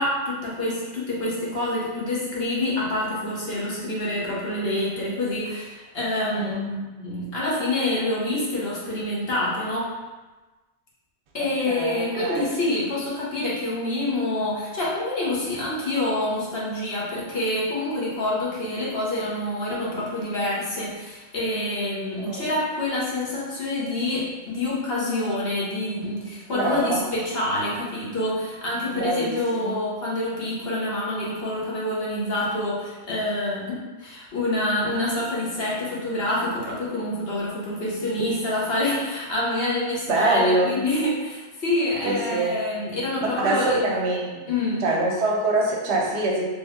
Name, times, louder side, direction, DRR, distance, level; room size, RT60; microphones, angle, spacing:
voice 1, 0.0-9.9 11.3-43.9 44.5-44.8, left 1 dB, 65° left, -6 dB, 1.1 m, -27 dB
voice 2, 6.3-6.7 11.4-12.5 22.2-22.4 26.5-27.0 28.9-29.8 40.1-40.8 42.0-42.6 43.4-44.5 44.8-46.4, right 2 dB, 75° right, -1 dB, 0.9 m, -25 dB
3.2 x 2.2 x 3.5 m, 1.2 s
omnidirectional pair, 1.1 m